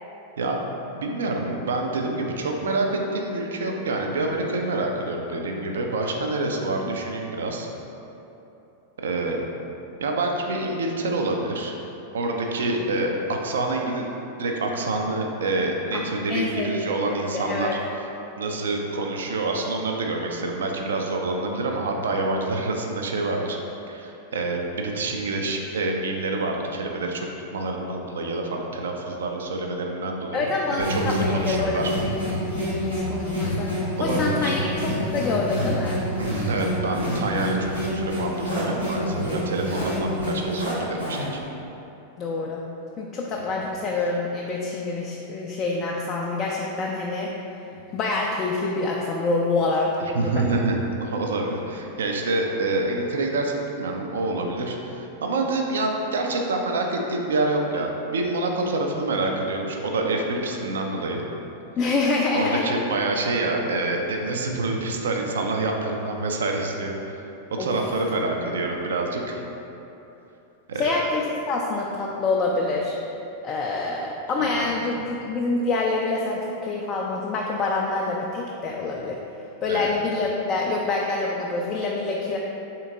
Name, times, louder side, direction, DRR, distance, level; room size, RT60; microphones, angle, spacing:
voice 1, 0.9-7.7 9.0-9.4 10.0-11.8 12.1-14.1 14.4-17.8 18.4-23.6 23.9-32.0 34.0-34.6 36.2-38.3 38.6-41.4 50.1-61.2 62.3-67.2 67.5-69.4 70.7-70.9 74.4-74.6 75.0-75.1 79.7-79.9, right 2 dB, 65° right, 2 dB, 0.4 m, -27 dB
voice 2, 16.3-16.9 17.4-17.7 30.3-31.8 32.2-34.6 35.1-36.0 42.2-42.6 43.0-47.3 47.9-49.9 50.2-50.4 61.8-62.6 67.6-67.7 70.8-73.0 73.4-79.2 79.6-82.4, left 3 dB, 30° left, -2 dB, 0.3 m, -26 dB
sound 1, 30.8-41.4, equal, 90° right, 1.5 m, -27 dB
3.5 x 2.9 x 3.6 m, 3.0 s
figure-of-eight pair, 90°, 0 cm